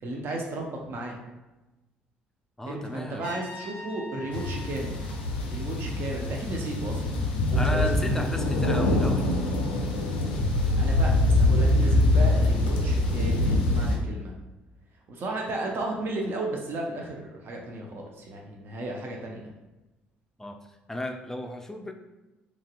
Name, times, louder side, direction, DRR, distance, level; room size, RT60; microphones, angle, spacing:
voice 1, 0.0-1.2 2.7-5.2 5.4-8.2 8.7-8.9 10.8-14.3 15.1-19.5, right 2 dB, 45° right, 0 dB, 0.5 m, -34 dB
voice 2, 2.6-3.3 7.5-9.3 10.7-11.0 20.4-20.6 20.9-21.9, left 1 dB, 10° left, 4 dB, 0.4 m, -34 dB
Trumpet, 3.2-6.1, left 2 dB, 85° right, 1.0 m, -45 dB
sound 1, 4.3-14.0, left 2 dB, 80° left, 0.4 m, -24 dB
2.9 x 2.7 x 2.5 m, 1.1 s
hypercardioid pair, 50°, 5 cm